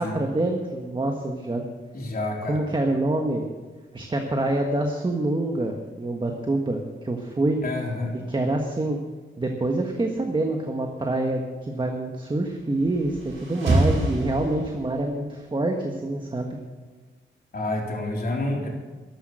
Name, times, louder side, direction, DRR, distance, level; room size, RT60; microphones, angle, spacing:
voice 1, 0.0-1.6 2.5-3.5 3.9-7.6 8.3-9.0 9.4-16.5, right 2 dB, 25° right, 2 dB, 1.4 m, -26 dB
voice 2, 1.9-2.6 7.6-8.1 17.5-18.7, left 2 dB, 50° left, -1 dB, 3.9 m, -29 dB
sound 1, 12.7-15.1, right 2 dB, 85° right, 4.9 m, -26 dB
13.0 x 13.0 x 6.3 m, 1.3 s
wide cardioid pair, 115°, 20 cm